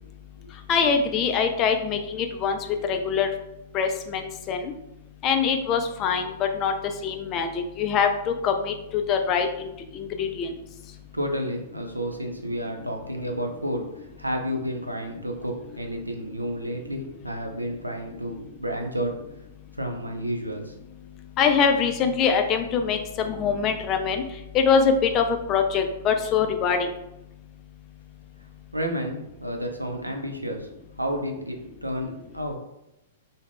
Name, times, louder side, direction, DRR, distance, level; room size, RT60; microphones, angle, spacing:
voice 1, 0.7-2.6 2.9-3.3 3.7-4.6 5.2-6.7 7.0-9.7 9.9-10.5 21.4-24.2 24.5-26.9, left 6 dB, 30° left, 6 dB, 0.3 m, -23 dB
voice 2, 11.1-19.2 19.7-20.7 28.7-30.7 31.0-32.6, equal, 90° right, 3 dB, 0.4 m, -31 dB
2.4 x 2.0 x 3.3 m, 0.89 s
figure-of-eight pair, 105°, 0 cm